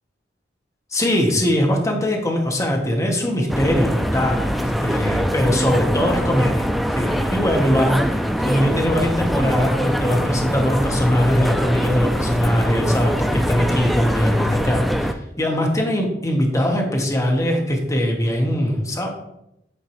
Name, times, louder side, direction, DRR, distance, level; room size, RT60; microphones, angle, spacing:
voice 1, 0.9-19.1, left 1 dB, 20° left, 1 dB, 0.9 m, -21 dB
sound 1, 3.5-15.1, equal, ahead, 0.3 m, -23 dB
8.6 x 3.7 x 3.0 m, 0.82 s
head